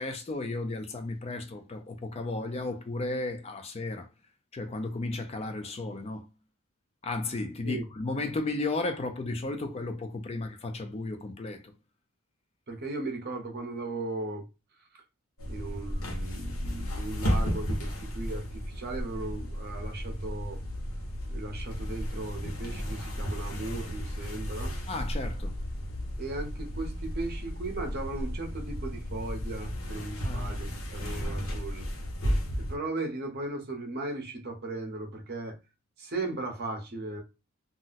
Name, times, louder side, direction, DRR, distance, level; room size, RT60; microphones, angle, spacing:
voice 1, 0.0-4.1 4.5-6.2 7.0-11.6 24.9-25.5 30.2-30.5, left 2 dB, 30° left, 0.3 m, -34 dB
voice 2, 12.7-14.4 15.5-20.6 21.3-24.7 26.2-31.9 32.7-35.6 36.0-37.2, right 2 dB, 45° right, 0.7 m, -37 dB
sound 1, 15.4-32.8, equal, 70° left, 0.9 m, -34 dB
2.4 x 2.1 x 3.9 m
head